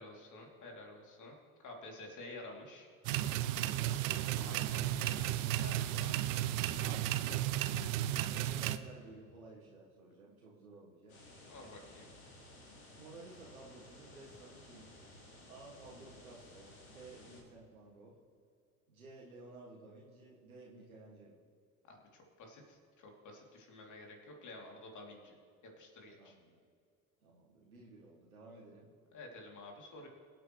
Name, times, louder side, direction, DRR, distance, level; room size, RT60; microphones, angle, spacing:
voice 1, 0.0-2.9 4.4-6.3 6.8-7.0 7.2-7.3 11.4-12.1 21.8-25.3 25.8-26.3 29.1-30.1, left 2 dB, 45° left, 0 dB, 3.3 m, -51 dB
sound 1, 3.0-8.8, right 13 dB, 65° right, 0.7 m, -34 dB
voice 2, 3.6-4.8 7.2-7.5 8.3-11.2 12.9-15.0 15.5-18.2 18.9-21.4 26.2-26.6 27.2-28.9, right 2 dB, 90° right, -4 dB, 1.8 m, -55 dB
sound 2, 11.1-17.4, left 1 dB, 80° left, 3.8 m, -56 dB
23.5 x 8.8 x 3.3 m, 2.3 s
hypercardioid pair, 65°, 42 cm